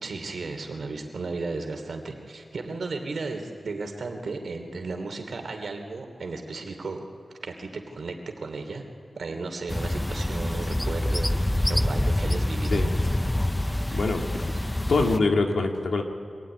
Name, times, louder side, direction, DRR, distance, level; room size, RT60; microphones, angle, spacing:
voice 1, 0.0-7.1 7.4-8.8 9.2-12.8, right 3 dB, 80° right, 4 dB, 3.0 m, -34 dB
sound 1, 9.7-15.2, left 1 dB, 15° left, 0.6 m, -26 dB
voice 2, 13.9-14.2 14.9-16.0, left 3 dB, 90° left, 3 dB, 2.2 m, -23 dB
24.0 x 17.5 x 9.9 m, 2.3 s
wide cardioid pair, 75°, 0 cm